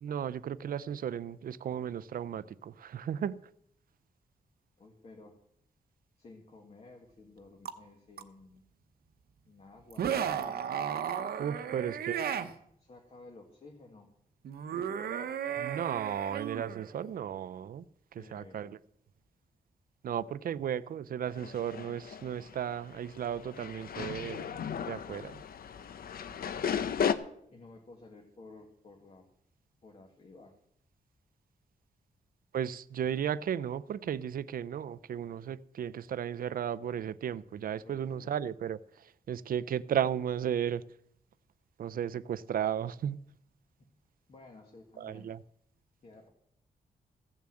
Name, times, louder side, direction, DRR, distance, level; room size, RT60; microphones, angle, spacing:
voice 1, 0.0-3.3 11.4-12.2 15.6-17.8 18.3-18.7 20.0-24.5 24.9-25.4 32.5-38.8 39.3-40.8 41.8-43.2 45.0-45.4, right 9 dB, 70° right, 0.5 m, -34 dB
voice 2, 4.8-5.4 6.2-8.6 9.5-10.7 11.6-12.0 12.8-14.1 18.1-18.8 25.4-25.6 26.2-26.8 27.5-29.3 29.8-30.5 37.5-38.3 43.8-43.9 44.3-45.3 46.0-46.3, left 3 dB, 40° left, 1.8 m, -54 dB
sound 1, 7.7-7.8 8.2-8.3 9.9-12.5 14.4-17.1, right 8 dB, 85° right, 1.0 m, -34 dB
sound 2, 21.3-27.1, left 7 dB, 75° left, 0.8 m, -35 dB
15.5 x 7.0 x 7.7 m
wide cardioid pair, 140°, 16 cm